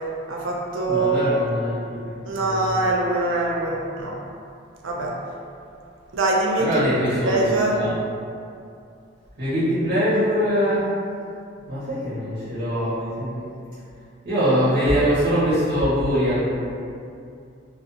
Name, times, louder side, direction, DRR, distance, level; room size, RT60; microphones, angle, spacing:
voice 1, 0.3-1.4 2.3-4.1 4.8-5.1 6.1-6.7 7.2-7.8, right 2 dB, 75° right, -2 dB, 0.4 m, -23 dB
voice 2, 0.9-2.9 6.6-7.3 7.7-8.1 9.4-11.0 11.7-13.5 14.2-16.5, equal, 55° right, -12 dB, 0.9 m, -23 dB
2.4 x 2.4 x 2.7 m, 2.4 s
head